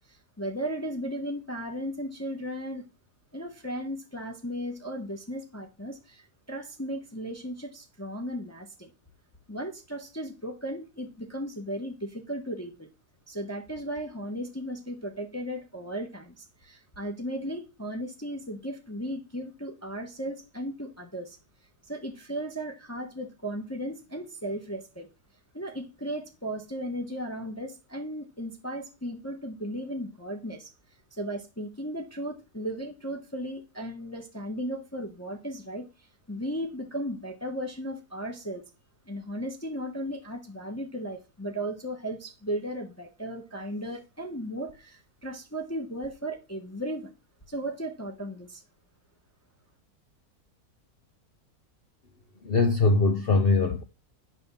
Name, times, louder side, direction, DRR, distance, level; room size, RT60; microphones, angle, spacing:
voice 1, 0.1-2.9 3.3-8.9 9.5-12.9 13.3-21.4 21.9-25.1 25.5-30.7 31.1-38.6 39.1-47.1 47.5-48.6, equal, 10° left, 1.0 m, -36 dB
voice 2, 52.4-53.8, left 3 dB, 50° left, 0.7 m, -22 dB
9.6 x 3.5 x 6.9 m
omnidirectional pair, 1.6 m